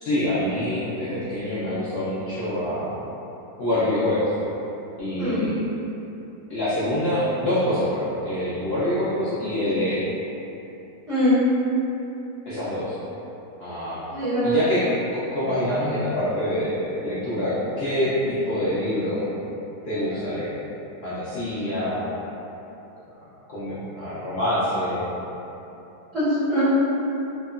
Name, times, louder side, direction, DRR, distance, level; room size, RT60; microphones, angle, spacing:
voice 1, 0.0-2.9 3.6-4.3 5.0-5.6 6.5-10.0 12.5-12.9 13.6-14.9 15.3-19.3 19.8-20.5 21.0-22.1 23.5-25.1, left 1 dB, 65° left, -13 dB, 0.6 m, -25 dB
voice 2, 11.1-11.4 14.1-14.6 26.1-26.6, left 1 dB, ahead, -14 dB, 0.5 m, -22 dB
2.8 x 2.1 x 2.4 m, 3.0 s
omnidirectional pair, 1.7 m